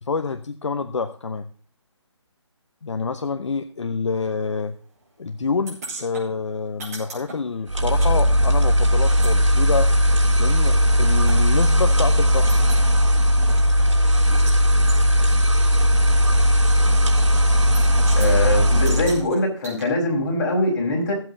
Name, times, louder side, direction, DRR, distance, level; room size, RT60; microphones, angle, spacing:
voice 1, 0.0-1.5 2.8-4.8 5.2-9.9 10.4-12.4, left 4 dB, 75° left, 8 dB, 1.0 m, -27 dB
sound 1, 5.7-8.1 8.4-11.4 11.8-11.9 12.2-12.9 13.3-14.6 14.9-15.0 15.8-15.9 17.2-17.5 17.7-18.3 18.8-19.8, right 2 dB, 30° right, 4.6 m, -38 dB
sound 2, 7.7-19.2, equal, 85° right, 2.9 m, -17 dB
voice 2, 18.2-21.1, left 1 dB, 40° left, -1 dB, 5.3 m, -22 dB
15.0 x 8.1 x 4.0 m, 0.41 s
hypercardioid pair, 160°, 16 cm